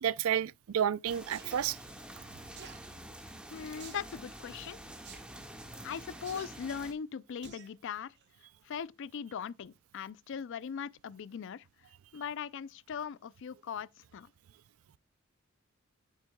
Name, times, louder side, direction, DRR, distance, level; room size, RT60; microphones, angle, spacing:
voice 1, 0.0-1.8, right 9 dB, 90° right, 0.4 m, -30 dB
sound 1, 1.0-6.9, right 1 dB, 5° right, 1.5 m, -48 dB
sound 2, 1.3-1.5 2.6-2.8 3.8-4.1 5.0-5.2 6.2-6.5 7.4-7.7 8.2-8.3, right 6 dB, 55° right, 1.7 m, -49 dB
voice 2, 3.5-4.8 5.8-8.1 8.6-11.7 12.1-14.3, left 7 dB, 60° left, 0.4 m, -40 dB
9.0 x 8.2 x 2.2 m
head